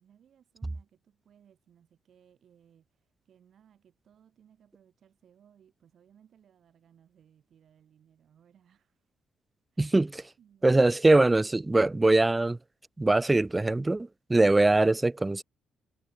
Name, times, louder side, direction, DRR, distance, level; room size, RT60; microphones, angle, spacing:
voice 1, 0.0-9.1 9.7-9.9 10.4-10.8, right 9 dB, 60° right, 6.9 m, -62 dB
voice 2, 9.8-10.2 10.6-12.6 13.0-15.4, right 2 dB, 15° right, 0.3 m, -22 dB
cardioid pair, 90°, 0 cm